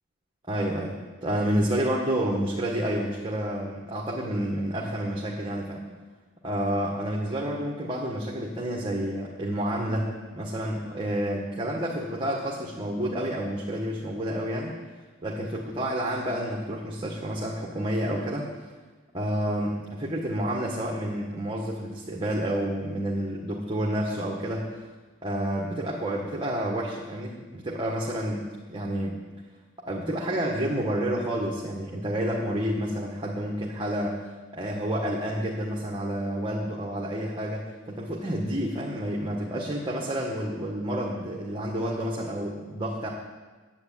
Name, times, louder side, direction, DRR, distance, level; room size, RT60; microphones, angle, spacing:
voice 1, 0.5-5.8 6.4-14.7 15.2-18.5 19.1-24.9 25.2-29.2 29.9-34.2 34.5-43.1, right 1 dB, 25° right, -3 dB, 1.6 m, -29 dB
11.0 x 8.4 x 9.1 m, 1.3 s
head